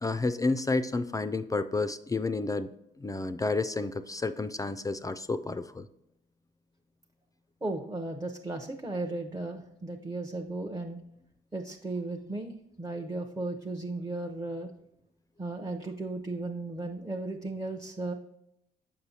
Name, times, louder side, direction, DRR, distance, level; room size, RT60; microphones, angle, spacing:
voice 1, 0.0-2.7 3.0-5.9, left 3 dB, 20° left, 11 dB, 0.3 m, -30 dB
voice 2, 7.6-11.0 11.5-14.7 15.4-18.1, right 2 dB, 15° right, 3 dB, 0.6 m, -35 dB
6.7 x 5.5 x 2.7 m, 0.82 s
supercardioid pair, 65°, 19 cm